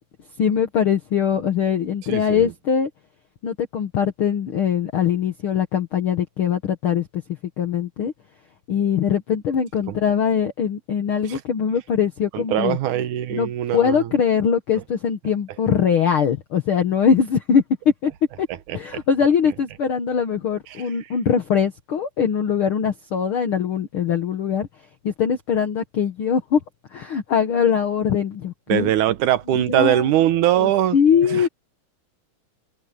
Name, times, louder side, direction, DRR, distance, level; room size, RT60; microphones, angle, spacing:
voice 1, 0.4-2.9 3.4-7.2 7.6-8.1 8.7-12.8 13.3-17.6 18.0-18.1 18.4-18.5 18.7-24.7 25.0-26.6 26.9-28.9 29.5-30.0 30.6-31.5, left 7 dB, 55° left, 1.8 m, -22 dB
voice 2, 2.1-2.5 9.9-10.0 11.3-11.4 12.3-14.1 18.7-19.0 28.7-31.0 31.3-31.5, right 12 dB, 80° right, 2.5 m, -21 dB
omnidirectional pair, 3.5 m